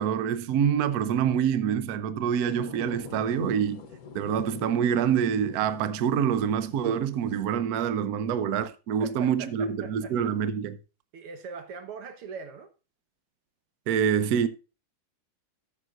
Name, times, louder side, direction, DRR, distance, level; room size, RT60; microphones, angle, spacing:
voice 1, 0.0-3.8 4.1-10.8 13.9-14.5, right 8 dB, 70° right, 0.9 m, -26 dB
sound 1, 2.4-7.6, left 6 dB, 55° left, 1.2 m, -44 dB
voice 2, 9.0-10.1 11.1-12.7, right 5 dB, 85° right, 2.1 m, -41 dB
13.5 x 7.3 x 2.5 m
omnidirectional pair, 2.4 m